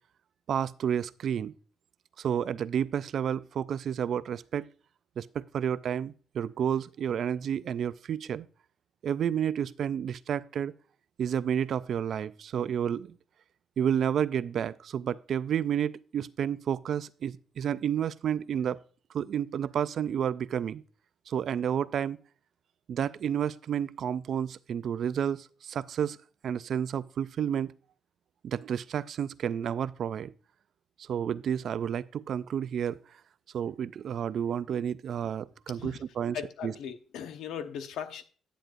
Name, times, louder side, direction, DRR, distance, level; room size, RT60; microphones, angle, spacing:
voice 1, 0.5-1.5 2.2-4.7 5.2-8.5 9.0-10.7 11.2-13.2 13.8-18.8 19.1-20.8 21.3-22.2 22.9-26.2 26.4-27.7 28.4-30.3 31.0-33.0 33.5-36.7, right 8 dB, 45° right, 0.3 m, -30 dB
voice 2, 36.3-38.2, left 8 dB, 70° left, 0.9 m, -38 dB
10.0 x 9.0 x 2.5 m
cardioid pair, 175°, 0 cm